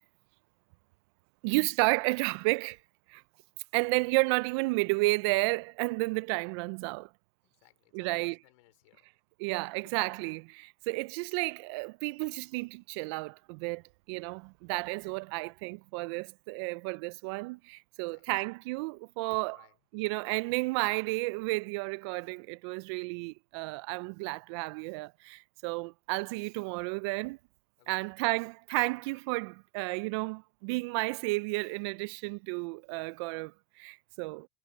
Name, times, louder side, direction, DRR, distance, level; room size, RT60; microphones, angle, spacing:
voice 1, 1.4-2.8 3.1-3.2 3.7-7.1 7.9-8.4 9.4-13.8 14.1-19.6 19.9-27.4 27.9-34.5, right 26 dB, 50° right, 0.5 m, -32 dB
voice 2, 7.4-9.1 9.8-10.0 16.1-16.2 18.1-18.3 19.4-19.8 27.8-28.1 32.3-32.4, left 21 dB, 60° left, 4.1 m, -62 dB
hypercardioid pair, 120°, 19 cm